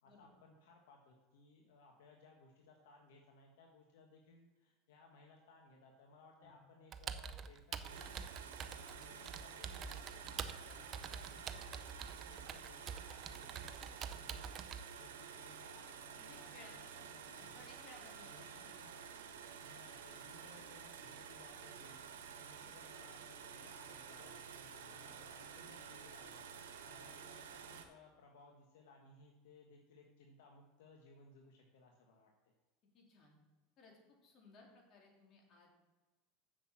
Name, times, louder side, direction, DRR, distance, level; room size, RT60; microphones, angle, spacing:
voice 1, 0.0-15.9 16.2-17.6 18.2-19.0 19.6-32.5, left 3 dB, 80° left, 1 dB, 1.4 m, -63 dB
Computer keyboard, 6.9-14.8, right 7 dB, 40° right, 0.7 m, -46 dB
sound 1, 7.9-27.8, right 7 dB, 85° right, 1.2 m, -51 dB
voice 2, 16.2-17.0 17.4-18.7 22.6-22.7 32.9-33.4 33.8-35.8, left 2 dB, 45° left, -1 dB, 3.6 m, -61 dB
7.4 x 6.8 x 7.3 m, 1.2 s
hypercardioid pair, 100°, 0 cm